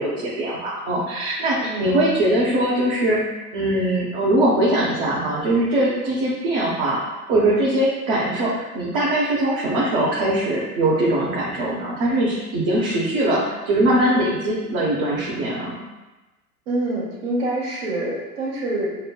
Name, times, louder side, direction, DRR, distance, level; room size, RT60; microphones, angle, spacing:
voice 1, 0.0-3.2 3.5-7.0 7.3-15.8, right 1 dB, 45° right, -6 dB, 1.0 m, -21 dB
voice 2, 1.6-1.9 16.7-18.9, right 2 dB, 65° right, -10 dB, 1.5 m, -26 dB
6.6 x 2.2 x 2.2 m, 1.1 s
hypercardioid pair, 95°, 48 cm